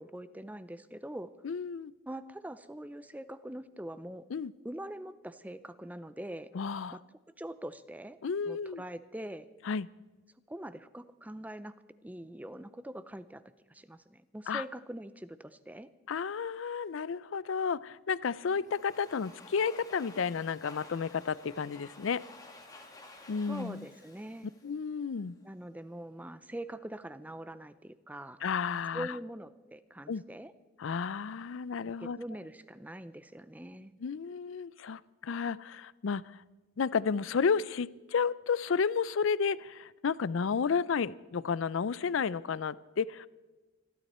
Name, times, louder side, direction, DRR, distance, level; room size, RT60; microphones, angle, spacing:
voice 1, 0.0-1.3 2.1-4.2 4.6-6.5 6.9-7.0 7.4-8.2 8.5-9.5 10.5-11.7 12.0-13.4 13.7-15.9 23.5-24.5 25.4-28.4 28.9-30.5 32.0-33.9, right 1 dB, 5° right, 14 dB, 0.5 m, -43 dB
voice 2, 1.4-1.9 4.3-4.5 6.5-7.0 8.2-8.8 9.7-9.9 14.5-14.6 16.1-22.2 23.3-23.8 24.6-25.3 28.4-29.2 30.1-30.2 30.8-32.2 34.0-36.4 36.8-43.3, left 6 dB, 65° left, 20 dB, 0.4 m, -32 dB
Domestic sounds home sounds, 18.4-25.3, left 2 dB, 15° left, 1.9 m, -53 dB
26.5 x 12.0 x 4.3 m, 1.2 s
head